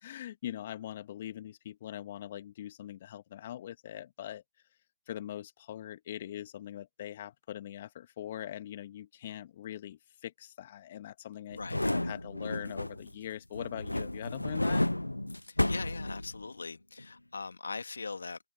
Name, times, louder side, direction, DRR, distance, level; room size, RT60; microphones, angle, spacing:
voice 1, 0.0-4.4 5.1-14.9, left 11 dB, 30° left, 2.0 m, -42 dB
sound 1, 11.5-13.2 13.5-16.6 17.0-17.1, left 1 dB, 90° left, 0.3 m, -32 dB
voice 2, 15.4-18.4, left 4 dB, 60° left, 2.0 m, -41 dB
figure-of-eight pair, 150°, 0 cm